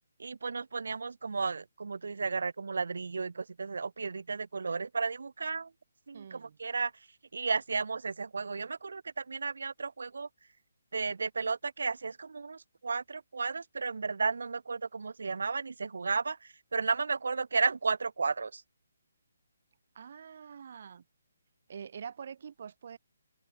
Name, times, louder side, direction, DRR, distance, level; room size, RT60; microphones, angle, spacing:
voice 1, 0.2-5.7 6.1-6.9 7.3-10.3 10.9-16.4 16.7-18.6, right 4 dB, 65° right, 0.4 m, -33 dB
voice 2, 6.1-6.6 19.9-21.0 21.7-23.0, right 7 dB, 35° right, 7.4 m, -45 dB
open air
hypercardioid pair, 180°, 0 cm